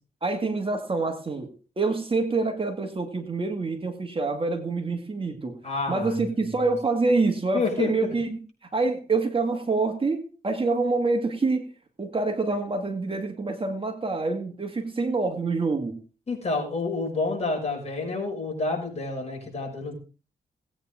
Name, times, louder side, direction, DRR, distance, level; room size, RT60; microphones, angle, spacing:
voice 1, 0.2-1.5 1.8-5.6 5.9-8.4 8.7-11.7 12.0-16.0, right 3 dB, 30° right, 5 dB, 2.2 m, -26 dB
voice 2, 5.6-6.3 7.5-8.1 16.3-19.9, left 3 dB, 40° left, 1 dB, 6.2 m, -29 dB
18.5 x 9.0 x 3.7 m, 0.36 s
cardioid pair, 90°, 17 cm